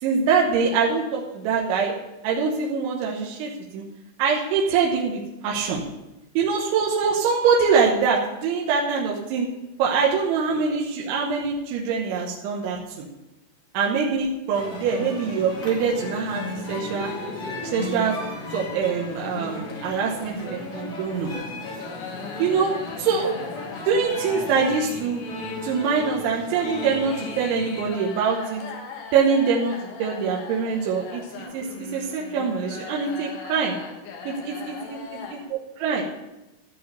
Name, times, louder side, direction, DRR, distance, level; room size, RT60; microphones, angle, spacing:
voice 1, 0.0-1.9 2.2-3.8 4.2-5.8 6.4-9.5 9.8-13.1 13.7-17.1 17.6-18.2 18.5-21.3 22.4-22.7 23.0-23.4 23.9-25.2 25.6-28.6 29.1-29.7 30.0-33.7 34.2-34.5 35.3-36.0, right 5 dB, 75° right, -2 dB, 3.2 m, -24 dB
sound 1, 14.5-27.9, left 2 dB, 40° left, 2.1 m, -36 dB
sound 2, 15.5-35.5, left 4 dB, 75° left, 3.8 m, -40 dB
14.5 x 5.4 x 6.7 m, 0.97 s
omnidirectional pair, 5.9 m